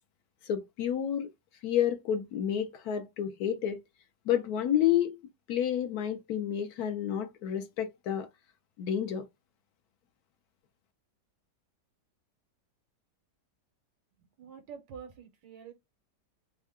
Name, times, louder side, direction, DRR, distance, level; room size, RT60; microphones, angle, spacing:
voice 1, 0.5-1.3 1.6-3.8 4.3-5.2 5.5-8.3 8.8-9.2, left 10 dB, 70° left, 1.0 m, -30 dB
voice 2, 14.4-15.7, right 7 dB, 85° right, 1.5 m, -46 dB
3.6 x 2.2 x 3.5 m
omnidirectional pair, 1.9 m